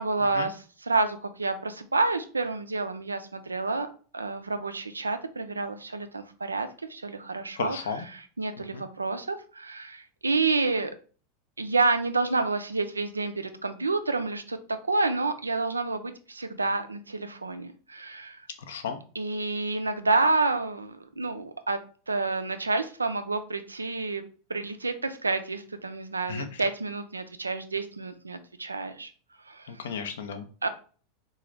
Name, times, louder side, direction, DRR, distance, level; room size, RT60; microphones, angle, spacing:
voice 1, 0.0-7.8 8.1-10.9 11.6-14.6 14.9-18.4 19.2-21.8 22.1-29.1 29.5-29.7 30.6-30.7, right 3 dB, 80° right, 9 dB, 0.4 m, -29 dB
voice 2, 7.6-8.1 8.6-8.8 18.7-19.0 26.2-26.6 29.7-30.5, left 6 dB, 65° left, 7 dB, 0.5 m, -34 dB
3.8 x 2.3 x 3.2 m, 0.40 s
figure-of-eight pair, 85°, 0 cm